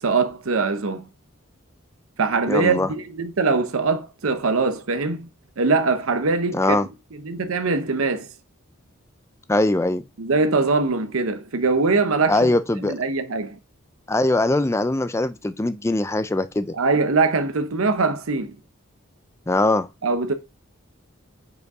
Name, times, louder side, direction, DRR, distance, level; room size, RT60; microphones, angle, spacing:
voice 1, 0.0-1.0 2.2-5.3 5.6-6.6 7.2-8.3 10.2-12.5 12.8-13.6 16.7-18.6 20.0-20.3, right 4 dB, 75° right, 0.7 m, -22 dB
voice 2, 2.5-2.9 6.5-6.9 9.5-10.0 12.3-12.9 14.1-16.7 19.5-19.9, left 2 dB, 15° left, 0.4 m, -21 dB
5.3 x 4.7 x 4.7 m
head